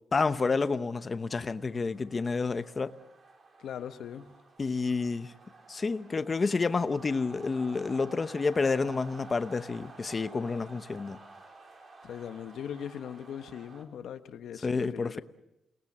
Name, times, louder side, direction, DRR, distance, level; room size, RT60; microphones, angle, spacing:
voice 1, 0.1-2.9 4.6-5.3 5.7-11.2 14.6-15.2, left 4 dB, 25° left, 0.9 m, -29 dB
sound 1, 1.2-13.8, right 3 dB, 40° right, 3.5 m, -52 dB
voice 2, 3.6-4.3 12.0-15.2, left 9 dB, 70° left, 1.2 m, -40 dB
29.5 x 19.5 x 7.4 m
wide cardioid pair, 160°, 0 cm